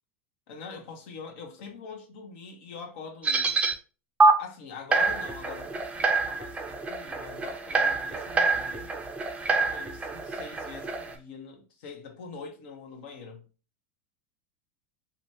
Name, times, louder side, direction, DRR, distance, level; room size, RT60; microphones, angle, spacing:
voice 1, 0.5-3.6 4.2-8.9 9.5-13.5, left 5 dB, 60° left, 0.8 m, -44 dB
sound 1, 3.2-3.7 4.2-4.3 4.9-11.1, right 3 dB, 15° right, 0.5 m, -26 dB
2.6 x 2.2 x 2.9 m
hypercardioid pair, 90°, 7 cm